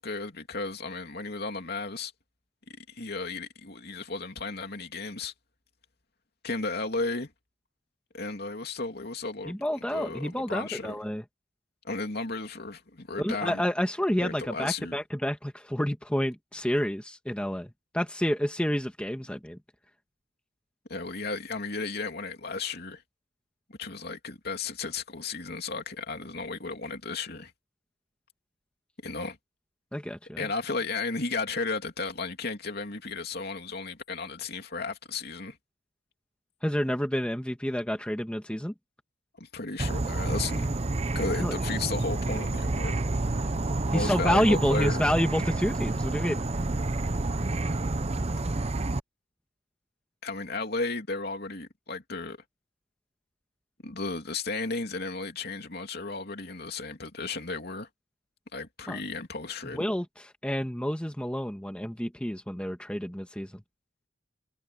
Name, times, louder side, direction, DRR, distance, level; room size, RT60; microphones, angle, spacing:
voice 1, 0.0-2.1 2.8-5.3 6.4-7.3 8.1-9.6 9.9-11.0 11.8-13.6 14.2-15.0 20.9-23.0 23.8-27.5 29.0-29.4 30.4-35.6 39.4-40.7 41.1-43.0 43.9-45.0 48.3-48.4 50.2-52.4 53.8-57.9 58.5-59.9, left 3 dB, 55° left, 2.9 m, -34 dB
voice 2, 9.5-11.2 13.2-19.6 29.9-30.5 36.6-38.7 41.4-41.5 43.9-46.4 58.9-59.0 59.7-63.5, equal, 5° left, 1.7 m, -29 dB
Insect / Frog, 39.8-49.0, right 2 dB, 35° right, 0.8 m, -29 dB
head